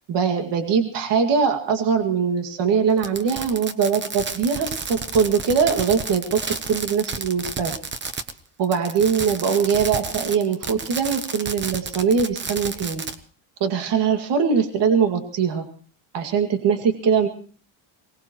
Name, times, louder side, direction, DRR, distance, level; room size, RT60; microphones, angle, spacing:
voice 1, 0.1-7.7 8.6-13.0 13.6-15.6 16.1-17.3, right 6 dB, 55° right, 5 dB, 2.3 m, -22 dB
Fireworks, 3.0-8.4 8.6-13.1, right 4 dB, 20° right, 1.0 m, -31 dB
23.5 x 19.5 x 3.1 m, 0.42 s
cardioid pair, 170°, 50 cm